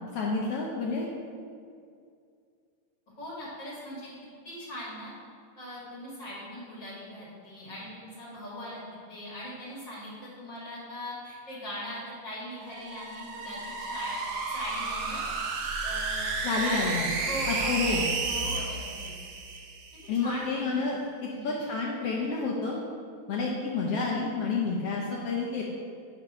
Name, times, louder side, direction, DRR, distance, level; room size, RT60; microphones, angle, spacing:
voice 1, 0.0-1.1 16.4-17.1 17.5-18.0 20.1-22.8 23.3-25.6, left 4 dB, 75° left, -2 dB, 1.5 m, -29 dB
voice 2, 3.2-4.1 4.4-5.1 5.6-8.8 9.1-14.2 14.5-15.2 15.8-16.4 16.6-19.1 20.0-20.8 21.3-21.6, equal, 40° left, -8 dB, 2.4 m, -40 dB
sound 1, 12.6-20.1, right 3 dB, 90° right, 2.4 m, -32 dB
6.4 x 5.2 x 5.6 m, 2.2 s
omnidirectional pair, 3.3 m